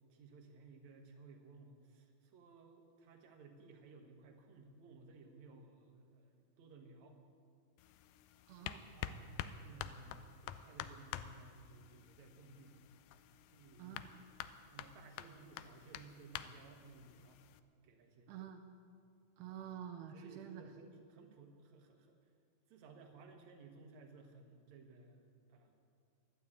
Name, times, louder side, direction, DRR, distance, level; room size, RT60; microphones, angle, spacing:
voice 1, 0.0-7.2 9.0-9.4 9.6-12.8 13.5-14.1 14.7-17.4 17.8-18.4 20.1-22.2 22.7-25.7, right 3 dB, 60° right, 3 dB, 2.3 m, -58 dB
sound 1, 7.8-17.6, left 10 dB, 80° left, 2.1 m, -49 dB
voice 2, 8.5-8.8 13.8-14.1 18.3-18.6 19.4-20.6, right 9 dB, 80° right, 4 dB, 1.9 m, -48 dB
12.0 x 11.5 x 8.4 m, 2.3 s
omnidirectional pair, 4.3 m